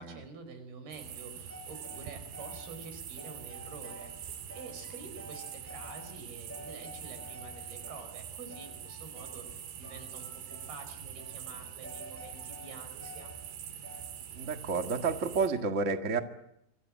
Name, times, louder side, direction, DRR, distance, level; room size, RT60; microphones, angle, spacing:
voice 1, 0.0-13.3, right 4 dB, 70° right, 9 dB, 6.6 m, -48 dB
sound 1, 0.9-15.5, right 9 dB, 90° right, 4.1 m, -44 dB
sound 2, 1.5-2.7 3.2-4.2 4.5-6.2 6.5-8.1 8.5-9.6 9.8-10.8 11.2-11.4 11.8-13.4 13.8-14.2, left 1 dB, 5° left, 4.4 m, -50 dB
voice 2, 14.3-16.2, right 4 dB, 50° right, 6 dB, 0.8 m, -30 dB
29.0 x 25.5 x 7.5 m, 0.80 s
omnidirectional pair, 4.6 m